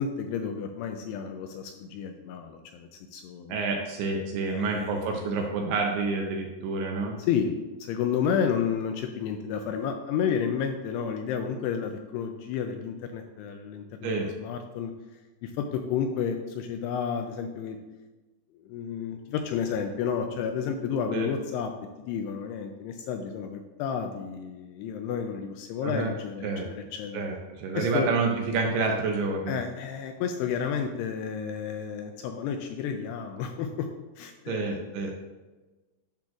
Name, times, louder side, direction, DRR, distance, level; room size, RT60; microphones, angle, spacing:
voice 1, 0.0-3.6 4.4-5.5 7.3-7.5 7.8-14.9 15.4-17.8 18.6-21.7 22.0-27.2 27.7-28.1 29.5-33.9 34.2-35.1, left 7 dB, 85° left, 5 dB, 2.4 m, -31 dB
voice 2, 3.5-7.2 14.0-14.3 21.1-21.3 25.8-26.1 26.4-26.7 27.1-29.6 34.5-35.1, right 4 dB, 80° right, 1 dB, 2.5 m, -28 dB
10.5 x 6.1 x 2.4 m, 1.2 s
omnidirectional pair, 5.1 m